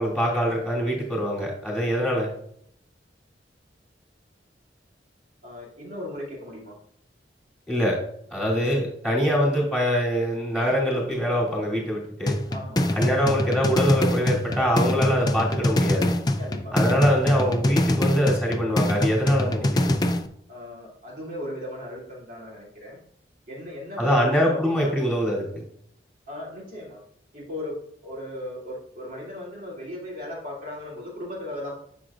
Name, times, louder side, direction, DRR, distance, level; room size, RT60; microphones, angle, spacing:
voice 1, 0.0-2.3 7.7-8.0 8.3-12.4 12.9-16.1 16.7-20.0 24.0-25.6, equal, 5° right, -6 dB, 2.9 m, -24 dB
voice 2, 5.4-6.7 12.5-13.0 16.4-16.8 20.5-23.0 23.5-25.0 26.3-27.0 27.3-31.8, left 1 dB, 50° right, -5 dB, 2.8 m, -37 dB
sound 1, 12.3-20.3, left 1 dB, 25° left, 0.4 m, -24 dB
10.0 x 6.3 x 2.5 m, 0.69 s
head